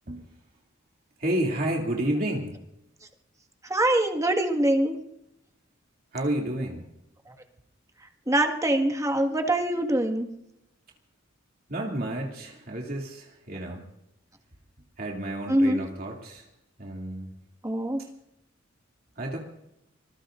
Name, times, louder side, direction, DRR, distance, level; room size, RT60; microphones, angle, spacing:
voice 1, 1.2-2.5 6.1-6.8 11.7-13.8 15.0-16.5 16.8-17.3 19.2-19.4, right 1 dB, 50° right, -1 dB, 2.7 m, -30 dB
voice 2, 3.7-5.0 8.3-10.3 15.5-15.8 17.6-18.0, right 1 dB, 15° right, 4 dB, 1.8 m, -23 dB
26.0 x 21.0 x 2.6 m, 0.82 s
head